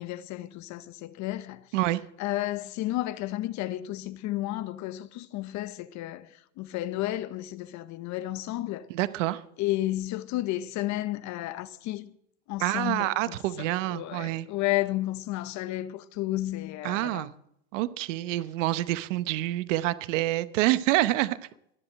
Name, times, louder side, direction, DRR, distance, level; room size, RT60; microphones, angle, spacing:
voice 1, 0.0-1.7 2.2-8.9 9.6-12.2 12.5-17.3, left 16 dB, 50° left, 0.9 m, -32 dB
voice 2, 8.9-9.4 12.6-14.5 16.8-17.3 17.7-21.4, right 16 dB, 75° right, 0.9 m, -27 dB
21.5 x 8.0 x 7.6 m
supercardioid pair, 110°, 38 cm